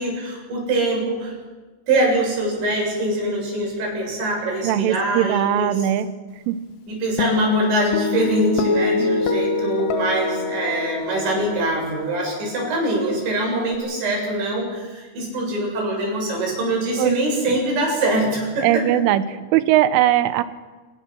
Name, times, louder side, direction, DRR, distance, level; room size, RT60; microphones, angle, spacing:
voice 1, 0.0-1.3 1.9-5.7 6.9-18.8, right 2 dB, 65° right, -1 dB, 9.6 m, -23 dB
voice 2, 4.6-6.1 6.5-6.6 9.0-9.2 17.0-17.2 17.5-17.6 18.6-20.4, right 12 dB, 80° right, 12 dB, 3.4 m, -20 dB
Guitar, 7.2-13.8, left 5 dB, 75° left, 3.6 m, -25 dB
28.5 x 19.0 x 6.1 m, 1.3 s
omnidirectional pair, 5.7 m